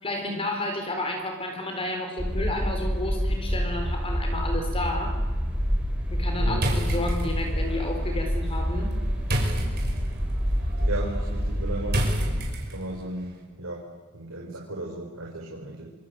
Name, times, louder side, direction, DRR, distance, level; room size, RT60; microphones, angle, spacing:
voice 1, 0.0-5.2 6.1-8.9, left 2 dB, 25° left, 4 dB, 4.3 m, -31 dB
sound 1, 2.2-12.4, equal, 5° right, 4.6 m, -27 dB
sound 2, 6.5-13.0, right 1 dB, 50° right, 6.0 m, -32 dB
voice 2, 10.8-12.0 12.7-13.9 14.1-15.9, right 1 dB, 70° right, -1 dB, 4.8 m, -35 dB
27.5 x 25.0 x 7.9 m, 1.4 s
head